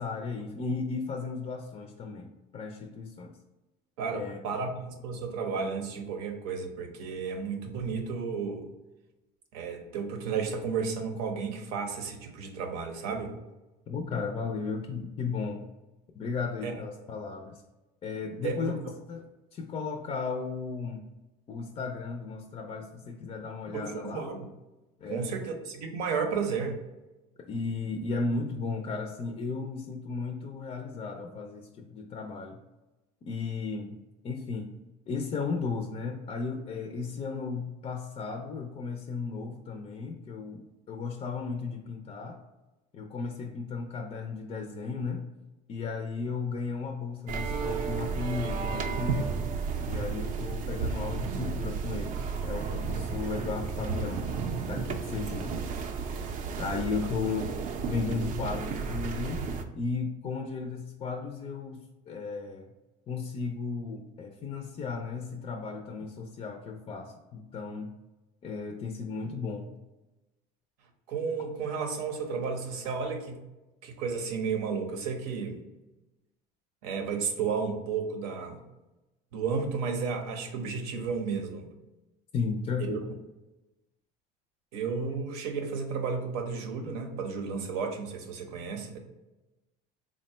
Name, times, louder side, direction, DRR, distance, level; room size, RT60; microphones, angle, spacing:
voice 1, 0.0-3.3 4.1-4.4 13.9-15.6 16.1-17.6 18.0-18.8 19.1-21.1 21.5-24.2 25.0-25.3 27.5-32.6 33.2-34.0 34.2-34.7 35.1-42.4 42.9-45.3 45.7-49.4 49.9-54.3 54.6-55.6 56.6-57.5 57.9-59.4 59.8-62.7 63.1-67.9 68.4-69.7 82.3-83.0, left 4 dB, 30° left, 3 dB, 0.4 m, -35 dB
voice 2, 4.0-8.7 9.5-13.3 16.6-16.7 18.4-18.9 23.7-24.5 25.1-26.8 71.1-73.4 73.8-75.6 76.8-78.6 79.3-81.7 82.9-83.0 84.7-89.0, right 5 dB, 90° right, 4 dB, 0.7 m, -33 dB
sound 1, 47.3-59.6, right 5 dB, 45° right, 0.4 m, -33 dB
3.6 x 2.1 x 4.1 m, 1.0 s
cardioid pair, 120°, 18 cm